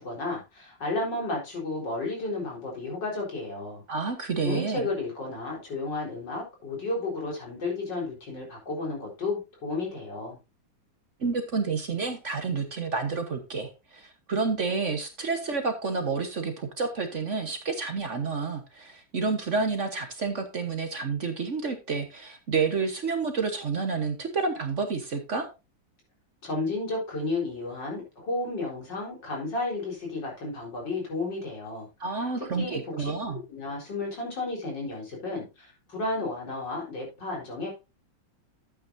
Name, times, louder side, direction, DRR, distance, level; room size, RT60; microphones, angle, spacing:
voice 1, 0.0-3.8 4.4-10.4 26.4-31.9 32.6-37.7, left 3 dB, 70° left, -2 dB, 4.9 m, -32 dB
voice 2, 3.9-4.9 11.2-25.5 32.0-33.4, right 4 dB, 45° right, 7 dB, 1.4 m, -29 dB
12.0 x 8.6 x 2.7 m, 0.27 s
omnidirectional pair, 2.0 m